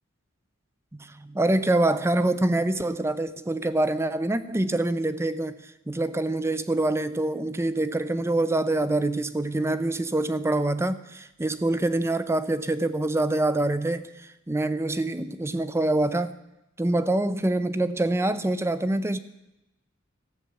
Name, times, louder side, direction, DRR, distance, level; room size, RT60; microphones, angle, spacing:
voice 1, 0.9-5.6 5.9-14.0 14.5-16.4 16.8-19.2, right 2 dB, 15° right, 13 dB, 0.5 m, -25 dB
13.0 x 6.9 x 8.3 m, 0.93 s
head